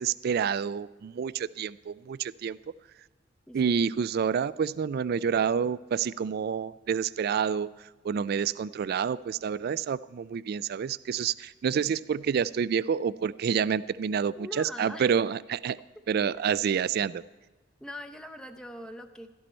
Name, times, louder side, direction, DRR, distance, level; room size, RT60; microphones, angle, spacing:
voice 1, 0.0-2.6 3.5-7.7 8.0-15.8 16.1-17.2, right 7 dB, 55° right, 18 dB, 0.3 m, -28 dB
voice 2, 14.4-15.1 17.8-19.3, left 1 dB, 5° left, 5 dB, 0.7 m, -42 dB
16.5 x 13.5 x 4.4 m, 1.2 s
head